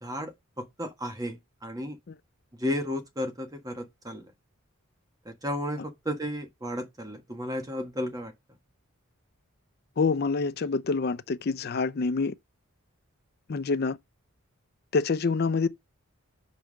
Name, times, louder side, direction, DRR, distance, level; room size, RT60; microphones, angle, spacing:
voice 1, 0.0-2.0 2.6-4.3 5.2-8.3, left 1 dB, 15° right, 1.4 m, -33 dB
voice 2, 10.0-12.3 13.5-14.0 14.9-15.7, left 4 dB, 50° left, 0.5 m, -26 dB
5.5 x 4.5 x 6.3 m
head